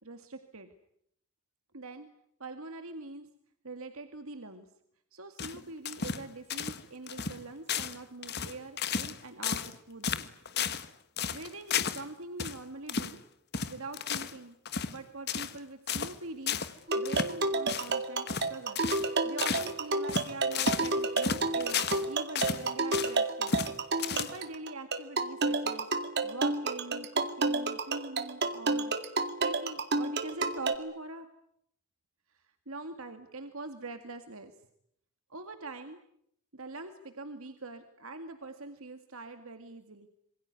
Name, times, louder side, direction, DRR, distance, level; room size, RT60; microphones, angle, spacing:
voice 1, 0.0-0.7 1.7-2.1 2.4-3.3 3.6-4.7 5.1-10.2 11.3-13.2 13.7-14.6 14.9-18.8 19.2-23.6 24.1-25.9 26.2-28.9 29.4-31.3 32.3-34.5 35.3-36.0 36.5-40.1, right 3 dB, 75° right, 7 dB, 2.1 m, -43 dB
sound 1, 5.4-6.2 6.5-6.8 7.1-7.4 7.7-9.2 9.4-9.7 10.0-10.9 11.2-12.0 12.4-12.6 12.9-13.2 13.5-14.4 14.6-15.0 15.3-15.6 15.9-16.1 16.5-16.7 17.0-17.3 17.7-17.9 18.3-18.5 18.7-19.1 19.4-19.7 20.1-22.0 22.3-23.1 23.5-23.7 24.0-24.5, left 6 dB, 45° left, 1.5 m, -33 dB
sound 2, 16.9-30.7, right 3 dB, 50° right, 2.2 m, -30 dB
27.0 x 23.0 x 9.6 m, 0.72 s
head